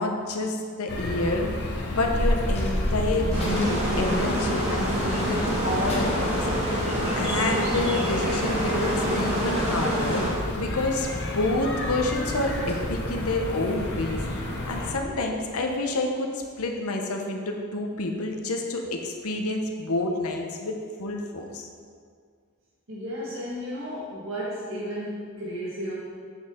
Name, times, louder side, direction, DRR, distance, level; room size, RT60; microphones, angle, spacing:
voice 1, 0.0-1.5 1.9-6.3 7.1-10.2 10.6-14.2 14.6-16.3 16.6-21.7, left 2 dB, 80° left, 2 dB, 0.9 m, -28 dB
sound 1, 0.9-14.9, left 1 dB, 50° left, 1.0 m, -30 dB
Coin (dropping), 2.4-16.1, left 1 dB, 30° left, 1.3 m, -44 dB
sound 2, 3.3-10.3, right 1 dB, 30° right, 2.0 m, -27 dB
voice 2, 22.9-25.9, equal, 60° right, -7 dB, 1.7 m, -33 dB
7.8 x 6.6 x 3.7 m, 2.1 s
head